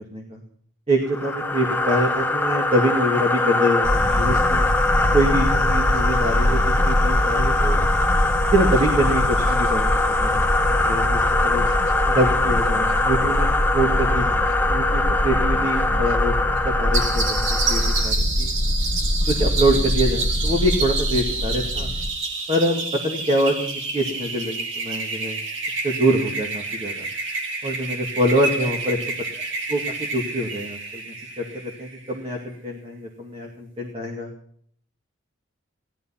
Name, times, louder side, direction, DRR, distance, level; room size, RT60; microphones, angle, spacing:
voice 1, 0.9-4.6 5.1-7.8 8.5-10.4 10.8-11.6 12.0-18.5 19.3-21.9 22.5-25.4 25.8-26.9 27.6-29.0 29.7-31.0 31.4-34.3, right 1 dB, 30° right, 1 dB, 2.2 m, -25 dB
sound 1, 1.1-18.1, left 2 dB, 10° left, 0.8 m, -22 dB
sound 2, 3.8-22.1, left 1 dB, 60° left, 1.9 m, -24 dB
sound 3, 16.9-32.2, right 3 dB, 60° right, 2.8 m, -29 dB
17.0 x 12.5 x 5.9 m, 0.65 s
head